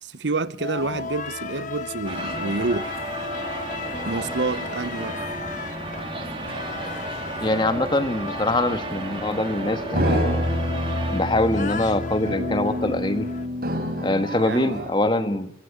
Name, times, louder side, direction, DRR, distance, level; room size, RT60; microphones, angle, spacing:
voice 1, 0.0-3.0 4.0-5.2 14.4-14.7 15.2-15.3, right 3 dB, 80° right, 1.0 m, -28 dB
sound 1, 0.6-13.5, left 4 dB, 45° left, 1.2 m, -35 dB
sound 2, 2.0-11.2, right 2 dB, 30° right, 3.4 m, -33 dB
voice 2, 7.4-10.5 11.1-13.3 14.0-15.5, left 1 dB, 25° left, 1.6 m, -24 dB
sound 3, 9.9-14.9, equal, 55° right, 4.3 m, -27 dB
24.5 x 14.5 x 10.0 m
head